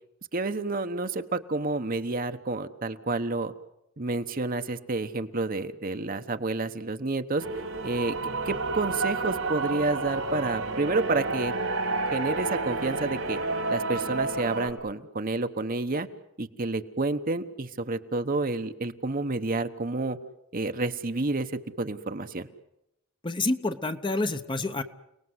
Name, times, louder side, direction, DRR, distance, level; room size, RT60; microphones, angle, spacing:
voice 1, 0.3-3.5 4.0-7.4 7.8-8.2 8.4-11.5 12.1-13.4 13.7-16.1 16.4-20.2 20.5-22.5, right 3 dB, 40° right, 8 dB, 1.1 m, -29 dB
sound 1, 7.4-14.7, right 3 dB, 75° right, 5.2 m, -30 dB
voice 2, 23.2-24.8, left 2 dB, 25° left, 9 dB, 0.9 m, -28 dB
29.5 x 19.0 x 8.0 m, 0.87 s
head